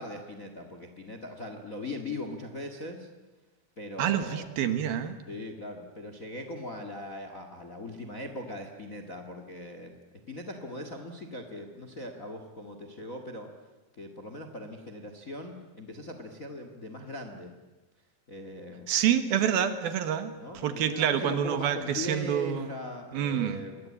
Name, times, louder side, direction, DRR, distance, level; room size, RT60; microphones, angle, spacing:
voice 1, 0.0-3.1 3.8-4.5 5.3-9.9 10.3-13.5 13.9-17.5 18.3-18.9 20.4-23.9, left 1 dB, 35° left, 6 dB, 1.4 m, -40 dB
voice 2, 4.0-5.2 18.9-20.3 20.6-22.7 23.1-23.6, right 9 dB, 70° right, 10 dB, 3.2 m, -27 dB
28.0 x 22.0 x 8.6 m, 1.2 s
omnidirectional pair, 4.5 m